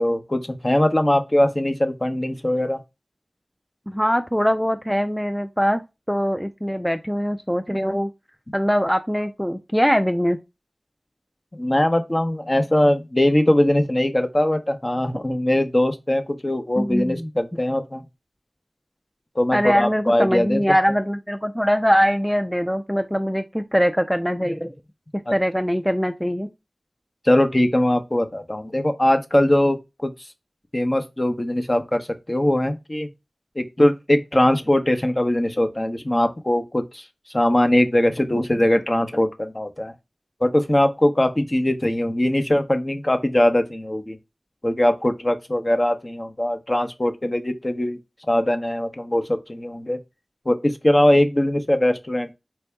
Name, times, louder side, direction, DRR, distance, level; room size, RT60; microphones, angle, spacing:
voice 1, 0.0-2.8 11.5-18.0 19.4-20.6 25.3-25.4 27.2-30.1 30.7-33.1 33.6-37.0 37.3-39.9 40.4-44.2 44.6-48.0 48.3-50.0 50.5-52.3, left 1 dB, 35° left, 0.8 m, -21 dB
voice 2, 3.9-5.8 6.1-8.1 8.5-10.4 16.8-17.3 19.5-24.7 25.1-26.5, equal, ahead, 0.4 m, -22 dB
4.4 x 2.7 x 3.4 m
wide cardioid pair, 55°, 0 cm